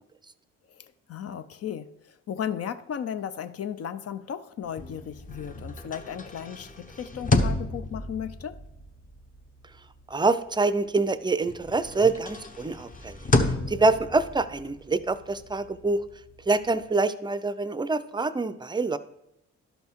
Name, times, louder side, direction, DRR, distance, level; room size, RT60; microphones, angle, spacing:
voice 1, 0.7-8.6, left 8 dB, 55° left, 11 dB, 0.6 m, -35 dB
sound 1, 4.7-11.1 11.5-16.9, left 2 dB, 25° left, 1.0 m, -32 dB
voice 2, 10.1-13.2 13.4-16.0 16.5-19.0, right 3 dB, 15° right, 14 dB, 0.5 m, -26 dB
12.0 x 5.3 x 4.6 m, 0.86 s
cardioid pair, 90°, 30 cm